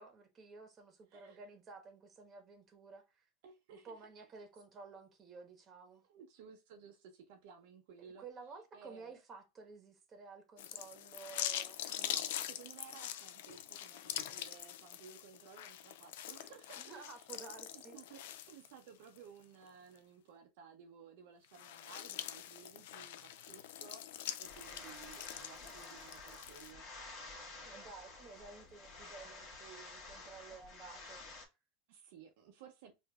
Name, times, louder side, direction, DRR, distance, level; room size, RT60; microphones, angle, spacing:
voice 1, 0.0-3.3 3.7-6.0 8.2-11.8 16.8-18.0 27.6-31.2, right 4 dB, 25° right, 1.2 m, -53 dB
voice 2, 3.4-4.0 6.0-8.2 8.7-9.2 11.9-17.3 17.7-26.9 27.1-27.2 31.9-32.9, right 7 dB, 70° right, 0.6 m, -57 dB
sound 1, 10.6-19.2 19.6-19.7 21.4-26.7, left 11 dB, 80° left, 0.3 m, -44 dB
sound 2, 24.4-31.5, left 3 dB, 40° left, 1.4 m, -51 dB
4.6 x 2.6 x 2.3 m
supercardioid pair, 130°, 0 cm